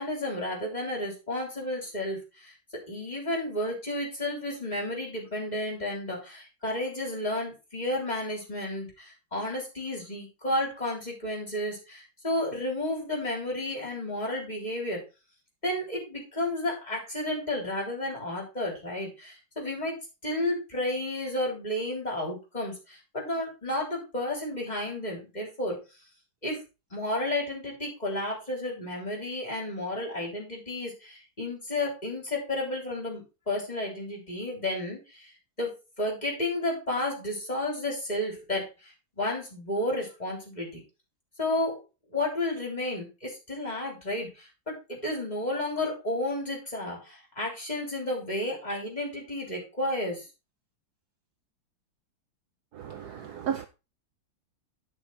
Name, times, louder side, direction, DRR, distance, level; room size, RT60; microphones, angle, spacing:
voice 1, 0.0-2.5 2.9-15.0 15.6-19.9 20.2-25.8 26.4-26.6 26.9-35.3 35.6-40.8 41.4-41.8 42.1-50.3, left 1 dB, 20° left, 3.9 m, -32 dB
voice 2, 52.7-53.7, right 8 dB, 65° right, 1.1 m, -34 dB
11.0 x 6.3 x 4.2 m
omnidirectional pair, 2.1 m